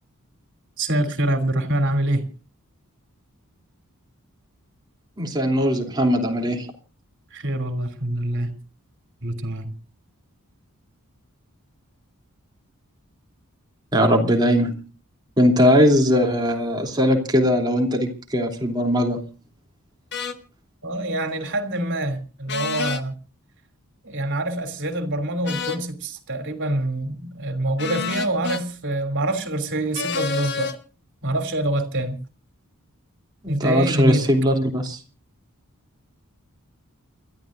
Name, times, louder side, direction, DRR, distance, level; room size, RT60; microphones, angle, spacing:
voice 1, 0.8-2.2 7.3-8.5 9.2-9.7 20.8-23.1 24.0-30.7 31.2-32.2 33.5-34.3, right 1 dB, 55° right, 8 dB, 3.1 m, -25 dB
voice 2, 5.2-6.7 13.9-14.8 15.4-19.2 33.4-35.0, equal, 20° right, 1 dB, 3.0 m, -20 dB
sound 1, 20.1-20.4 22.5-23.0 25.4-25.8 27.8-28.6 29.9-30.8, left 5 dB, 50° left, 1.4 m, -28 dB
28.5 x 13.5 x 2.6 m, 0.35 s
head